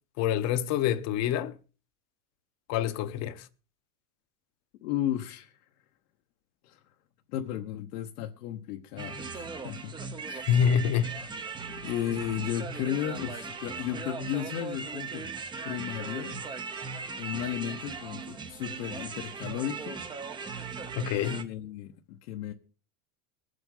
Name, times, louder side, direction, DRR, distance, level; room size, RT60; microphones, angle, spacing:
voice 1, 0.2-1.5 2.7-3.4 10.3-11.1 20.9-21.4, left 9 dB, 35° left, 0.8 m, -26 dB
voice 2, 4.8-5.5 6.6-6.8 7.3-10.0 11.8-15.3 15.6-16.5 17.2-20.0 21.2-22.5, left 11 dB, 75° left, 1.1 m, -34 dB
sound 1, 9.0-21.4, right 5 dB, 10° right, 0.5 m, -38 dB
21.0 x 8.0 x 3.8 m
supercardioid pair, 150°, 45 cm